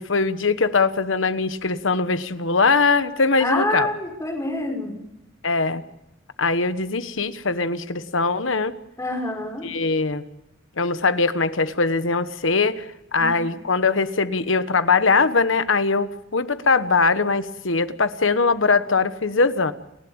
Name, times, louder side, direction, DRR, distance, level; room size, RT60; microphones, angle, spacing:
voice 1, 0.0-3.9 5.4-5.8 6.4-8.7 9.6-10.2 10.8-12.9 13.1-19.7, left 4 dB, 80° left, 12 dB, 1.2 m, -21 dB
voice 2, 3.4-5.0 9.0-9.7 13.2-13.4, left 1 dB, 15° left, 2 dB, 5.7 m, -27 dB
29.5 x 12.0 x 8.8 m, 0.85 s
head